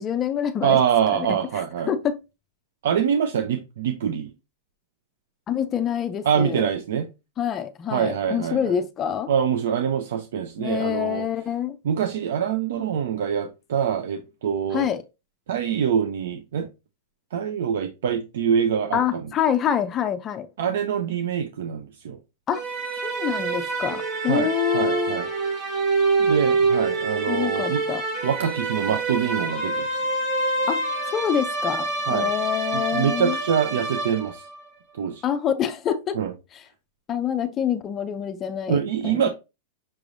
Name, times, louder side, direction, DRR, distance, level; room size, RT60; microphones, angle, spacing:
voice 1, 0.0-0.8 1.1-1.3 1.5-2.2 5.5-6.7 7.4-9.3 10.6-11.8 14.7-15.0 18.9-20.5 22.5-22.6 23.0-25.2 27.3-28.0 30.7-33.4 35.2-36.2 36.5-36.6 37.1-39.3, left 9 dB, 20° left, 0.4 m, -26 dB
voice 2, 0.6-1.9 2.8-4.3 6.2-7.1 7.9-8.7 9.3-11.3 11.8-14.9 15.5-16.7 17.3-19.2 20.6-22.2 24.3-24.5 24.7-25.3 26.2-27.8 28.2-29.9 32.1-32.3 32.7-34.4 35.0-35.2 36.1-36.3 38.7-39.3, right 8 dB, 70° right, 0.6 m, -24 dB
sound 1, 22.5-34.6, right 3 dB, 25° right, 1.3 m, -26 dB
5.9 x 3.2 x 2.6 m
supercardioid pair, 155°, 0 cm